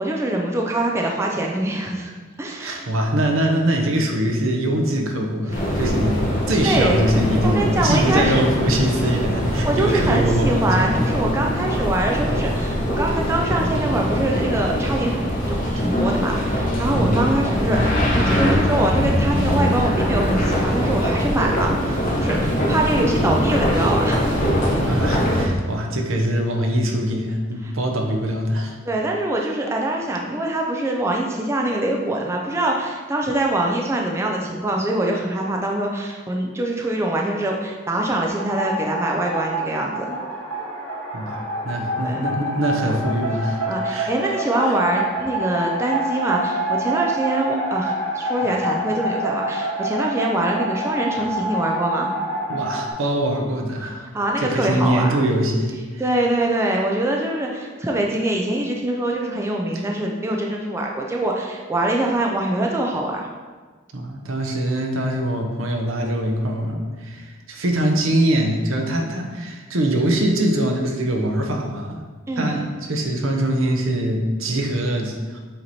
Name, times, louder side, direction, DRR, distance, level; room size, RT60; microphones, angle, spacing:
voice 1, 0.0-2.1 2.4-2.9 5.5-5.8 6.6-7.0 7.4-8.4 9.6-24.4 27.6-27.7 28.8-40.2 42.0-42.3 43.7-52.1 54.1-55.2 56.0-63.3 72.3-72.6, right 1 dB, 15° right, 0 dB, 0.4 m, -24 dB
voice 2, 2.6-6.2 6.5-11.0 15.7-15.8 16.9-17.3 24.7-28.8 41.1-44.3 44.6-44.8 52.5-54.1 54.4-56.0 59.7-59.8 63.9-72.0 72.4-75.4, right 1 dB, 75° right, 2 dB, 0.8 m, -23 dB
sound 1, 5.5-25.5, equal, 40° left, 0.9 m, -22 dB
sound 2, 38.3-52.9, right 1 dB, 90° right, 1.5 m, -27 dB
7.7 x 3.0 x 4.1 m, 1.4 s
head